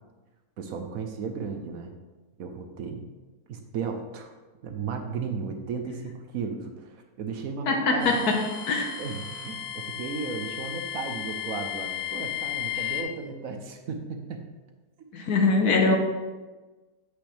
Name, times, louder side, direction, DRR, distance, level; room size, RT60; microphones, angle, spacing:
voice 1, 0.6-1.9 2.4-3.0 3.5-4.3 4.6-8.1 9.0-14.5 15.0-15.1, right 5 dB, 65° right, 5 dB, 1.0 m, -35 dB
voice 2, 7.7-8.9 15.1-16.0, left 3 dB, 70° left, 3 dB, 1.4 m, -23 dB
sound 1, 8.0-13.0, left 11 dB, 45° left, 1.1 m, -34 dB
7.9 x 6.3 x 3.3 m, 1.2 s
omnidirectional pair, 1.8 m